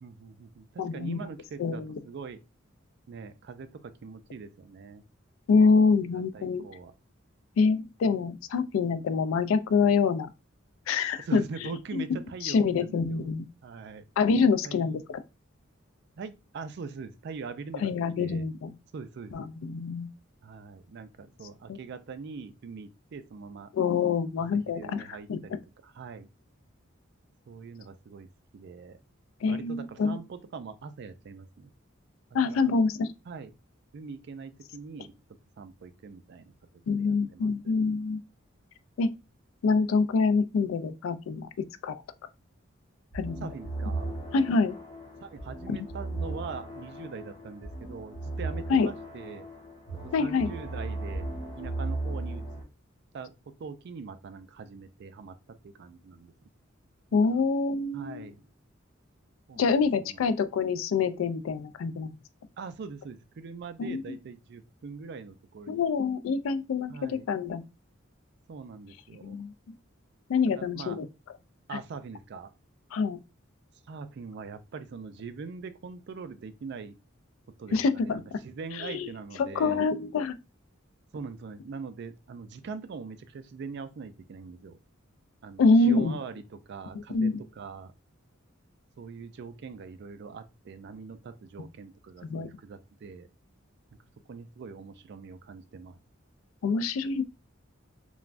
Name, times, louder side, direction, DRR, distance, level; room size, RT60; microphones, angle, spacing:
voice 1, 0.0-2.4 3.1-5.0 6.0-6.9 11.2-13.2 13.6-14.0 14.6-15.0 16.2-18.5 18.9-19.5 20.4-23.7 24.4-26.3 27.5-29.0 29.5-31.7 32.5-32.7 33.3-33.5 33.9-35.1 35.6-36.5 37.0-37.7 43.4-44.2 45.2-49.5 50.0-51.3 51.5-52.4 53.1-56.3 57.2-57.4 57.9-58.5 59.5-60.2 62.6-65.8 66.9-67.3 68.5-69.4 70.5-71.0 71.7-72.5 73.9-77.0 77.6-79.8 81.1-84.8 85.4-87.9 89.0-93.3 94.3-96.0, right 5 dB, 55° right, 0.4 m, -42 dB
voice 2, 0.8-1.2 1.6-1.9 5.5-6.6 7.6-10.3 10.9-11.4 11.9-13.5 14.2-15.2 17.8-18.7 19.3-20.1 21.7-21.8 23.7-25.0 25.3-25.4 29.4-30.2 32.3-33.1 36.9-38.2 39.0-39.1 39.6-42.0 43.1-43.4 44.3-44.8 45.7-45.8 48.7-48.9 50.1-50.5 57.1-58.3 59.6-62.2 63.8-64.0 65.7-67.6 69.2-69.5 70.3-71.1 71.7-71.8 72.9-73.2 77.7-78.4 78.8-79.1 79.4-80.4 85.6-86.1 87.1-87.4 92.3-92.5 96.6-97.2, left 4 dB, 90° left, 0.3 m, -26 dB
sound 1, 43.1-52.6, right 2 dB, 25° left, 0.9 m, -36 dB
3.2 x 2.2 x 2.4 m
head